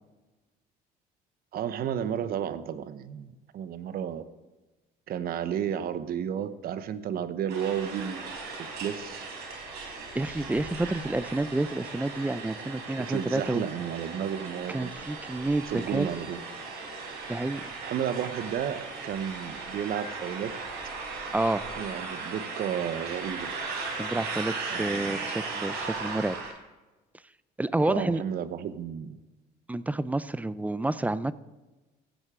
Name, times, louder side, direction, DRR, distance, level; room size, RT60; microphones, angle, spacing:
voice 1, 1.5-4.2 5.1-8.3 8.6-9.3 13.0-14.9 15.7-16.4 17.8-20.6 21.8-23.5 24.7-25.2 27.8-29.2, right 9 dB, 60° right, 12 dB, 0.9 m, -32 dB
sound 1, 7.5-26.5, right 4 dB, 80° right, 4.4 m, -37 dB
voice 2, 10.1-13.7 14.7-16.1 17.3-17.7 21.3-21.6 24.0-26.4 27.6-28.2 29.7-31.3, right 2 dB, 10° right, 15 dB, 0.4 m, -29 dB
15.5 x 9.8 x 3.7 m, 1.2 s
cardioid pair, 110°, 17 cm